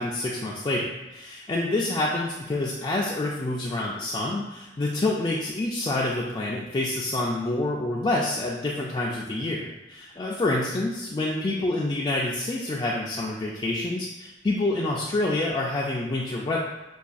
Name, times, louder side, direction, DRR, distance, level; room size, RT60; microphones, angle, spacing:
voice 1, 0.0-16.6, left 2 dB, 25° left, -4 dB, 0.3 m, -27 dB
5.5 x 2.3 x 2.5 m, 1.0 s
head